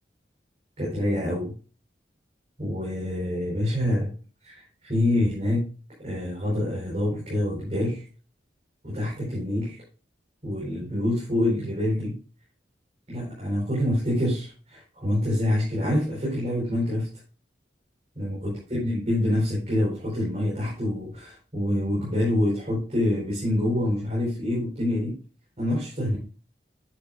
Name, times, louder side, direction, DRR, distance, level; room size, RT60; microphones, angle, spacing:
voice 1, 0.8-1.5 2.6-4.1 4.4-5.7 6.0-8.0 8.8-9.8 10.4-12.1 13.1-17.1 18.2-25.2 25.6-26.2, left 1 dB, 40° right, -6 dB, 4.4 m, -26 dB
10.0 x 7.7 x 2.4 m, 0.36 s
head